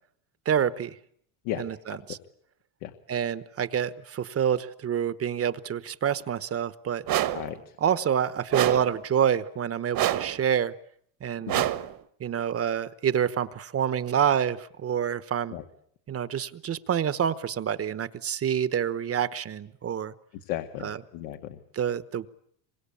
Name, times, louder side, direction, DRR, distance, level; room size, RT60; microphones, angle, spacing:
voice 1, 0.5-0.9 1.6-2.2 3.1-7.0 7.8-10.7 11.2-11.5 12.2-15.5 16.1-20.1 20.8-21.0 21.7-22.3, right 8 dB, 30° right, 14 dB, 1.1 m, -27 dB
sound 1, 7.1-7.5 8.5-9.0 9.9-10.4 11.5-12.0, right 13 dB, 50° right, 1.3 m, -26 dB
voice 2, 7.3-7.7 11.5-11.6 15.5-15.6 20.3-21.6, left 12 dB, 85° left, 6 dB, 2.0 m, -35 dB
26.5 x 24.0 x 8.5 m, 0.68 s
cardioid pair, 140°, 46 cm